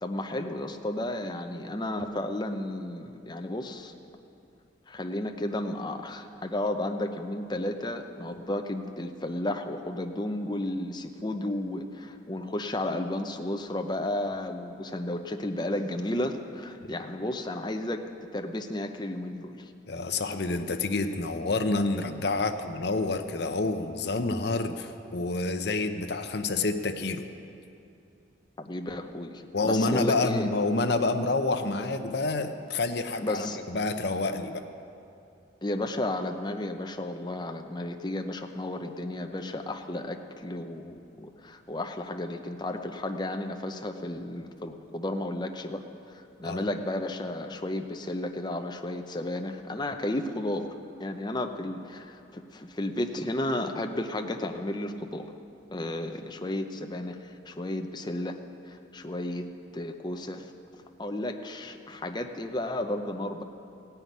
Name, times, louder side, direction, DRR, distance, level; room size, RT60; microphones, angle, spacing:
voice 1, 0.0-3.9 4.9-18.0 18.3-19.7 28.6-30.5 33.2-33.6 35.6-45.8 46.1-50.7 51.0-55.3 55.7-58.4 58.7-59.5 59.7-63.4, left 1 dB, 25° left, 5 dB, 0.7 m, -33 dB
voice 2, 19.9-27.3 29.5-34.6 46.4-46.6, left 3 dB, 60° left, 7 dB, 0.7 m, -28 dB
16.0 x 5.7 x 9.3 m, 2.6 s
head